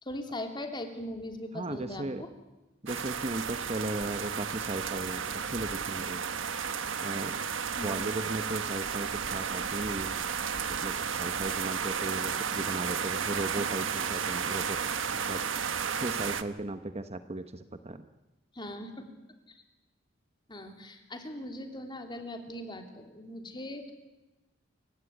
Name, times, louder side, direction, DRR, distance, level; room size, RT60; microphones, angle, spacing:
voice 1, 0.0-2.3 7.8-8.2 13.6-13.7 18.5-19.0 20.5-23.9, left 1 dB, 25° left, 5 dB, 3.2 m, -40 dB
voice 2, 1.5-2.2 2.8-6.2 7.0-7.4 7.8-10.1 10.8-15.4 15.9-18.0, right 2 dB, 30° right, 10 dB, 1.0 m, -36 dB
sound 1, 2.9-16.4, right 6 dB, 70° right, 1.3 m, -33 dB
28.0 x 16.0 x 9.8 m, 1.0 s
head